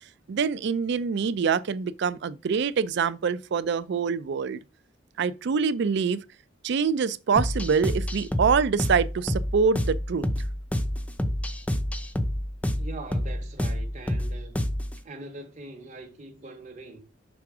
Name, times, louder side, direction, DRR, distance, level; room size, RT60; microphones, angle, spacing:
voice 1, 0.3-4.6 5.2-6.2 6.6-10.3, right 5 dB, 65° right, 0.4 m, -25 dB
sound 1, 7.4-15.0, equal, 10° left, 0.5 m, -28 dB
voice 2, 12.7-14.6 15.0-17.0, right 2 dB, 40° right, 1.0 m, -42 dB
6.1 x 3.5 x 4.8 m
head